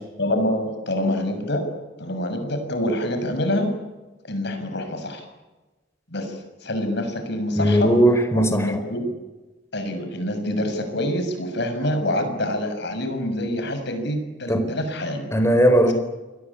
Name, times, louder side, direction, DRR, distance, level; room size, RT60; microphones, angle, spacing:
voice 1, 0.2-1.6 2.0-3.7 4.2-5.2 6.1-7.9 8.3-9.1 9.7-15.2, left 1 dB, 65° left, 7 dB, 6.7 m, -26 dB
voice 2, 7.6-8.8 14.5-14.7 15.3-15.9, right 1 dB, 15° left, 7 dB, 4.5 m, -18 dB
28.5 x 22.0 x 8.7 m, 1.2 s
head